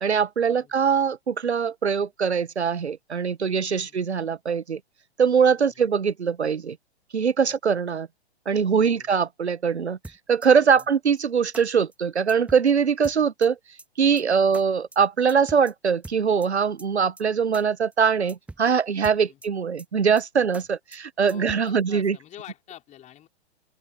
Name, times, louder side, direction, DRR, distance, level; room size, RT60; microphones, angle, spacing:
voice 1, 0.0-4.8 5.2-6.8 7.1-8.1 8.5-10.0 10.3-13.6 14.0-22.2, right 6 dB, 80° right, 0.8 m, -22 dB
voice 2, 5.6-5.9 7.4-7.5 8.8-9.1 10.6-10.9 14.2-14.6 19.2-19.4 21.3-23.3, left 12 dB, 20° left, 4.7 m, -47 dB
sound 1, 10.0-10.5 10.8-10.9 11.2-11.3 11.5-11.6 11.9-12.0 12.3-12.7 13.0-13.5 13.8-13.9 14.2-14.3 14.5-14.6 14.9-15.0 15.3-15.7 16.0-16.5 16.8-16.9 17.2-17.3 17.5-17.6 17.9-18.0 18.3-18.7 19.0-19.5 19.8-19.9 20.2-20.3 20.5-20.6 20.9-21.0 21.3-21.7, right 2 dB, 5° right, 1.8 m, -42 dB
open air
figure-of-eight pair, 115°, 33 cm